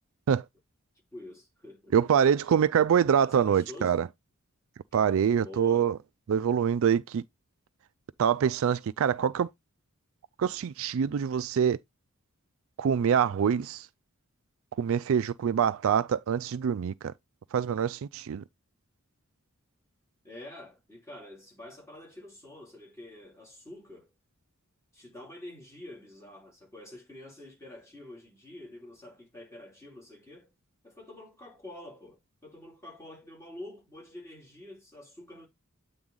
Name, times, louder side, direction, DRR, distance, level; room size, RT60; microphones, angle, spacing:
voice 1, 1.1-2.0 3.2-3.9 5.4-5.9 20.2-24.1 24.9-30.5 30.8-35.5, left 1 dB, 15° left, 3.2 m, -47 dB
voice 2, 1.9-4.1 4.9-5.9 6.3-7.2 8.2-9.5 10.4-11.8 12.8-13.9 14.8-17.1 17.5-18.4, right 8 dB, 65° right, 0.4 m, -25 dB
8.8 x 3.5 x 3.8 m
head